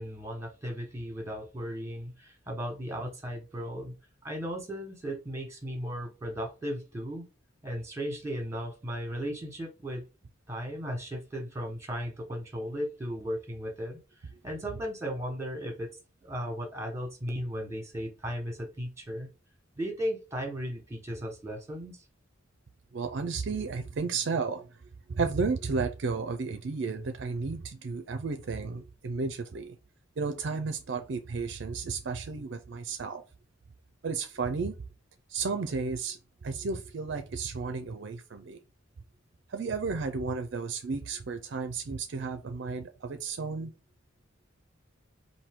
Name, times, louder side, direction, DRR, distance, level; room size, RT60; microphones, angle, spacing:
voice 1, 0.0-3.9 4.2-7.2 7.6-10.0 10.5-19.3 19.8-22.0, equal, 15° right, 1.2 m, -36 dB
voice 2, 22.9-24.7 25.1-29.8 30.2-33.2 34.0-34.8 35.3-36.2 36.4-38.6 39.5-43.7, right 4 dB, 60° right, 0.4 m, -33 dB
4.3 x 2.7 x 3.5 m
head